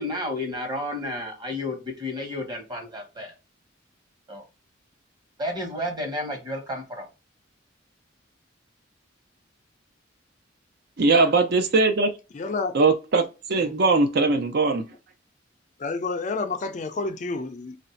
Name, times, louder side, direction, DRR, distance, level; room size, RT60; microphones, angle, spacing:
voice 1, 0.0-3.3 4.3-4.4 5.4-7.0, left 1 dB, 20° right, 1.1 m, -31 dB
voice 2, 11.0-12.1 12.7-13.2 13.5-14.9, right 3 dB, 55° right, 0.5 m, -20 dB
voice 3, 12.3-12.7 13.6-13.7 15.8-17.8, left 3 dB, 40° left, 0.4 m, -29 dB
3.1 x 2.6 x 4.4 m
head